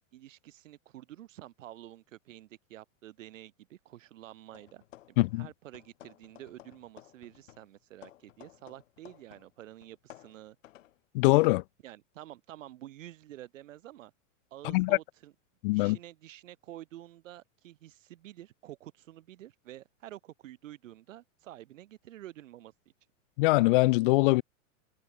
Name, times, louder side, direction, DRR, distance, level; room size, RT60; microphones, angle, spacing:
voice 1, 0.1-10.6 11.8-14.1 14.5-15.3 15.7-22.7, right 13 dB, 75° right, 3.1 m, -49 dB
sound 1, 4.5-5.5 5.7-9.5 9.8-11.0, left 13 dB, 75° left, 4.6 m, -55 dB
voice 2, 5.2-5.5 11.1-11.6 14.6-15.0 15.6-16.0 23.4-24.4, left 23 dB, 45° left, 0.4 m, -23 dB
hypercardioid pair, 135°, 39 cm